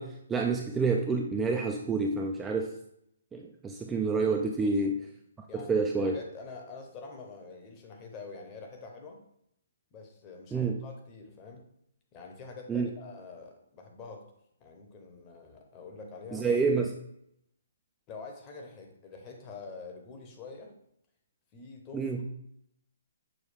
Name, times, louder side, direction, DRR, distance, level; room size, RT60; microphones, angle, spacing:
voice 1, 0.0-2.7 3.3-5.0 5.5-6.2 10.5-10.8 12.7-12.9 16.3-16.9 21.9-22.2, right 4 dB, 10° right, 2 dB, 0.3 m, -28 dB
voice 2, 5.5-9.2 9.9-11.6 12.1-14.2 14.6-16.5 18.1-20.7 21.5-22.1, left 4 dB, 25° left, 2 dB, 0.9 m, -46 dB
6.1 x 2.3 x 3.3 m, 0.74 s
figure-of-eight pair, 135°, 0 cm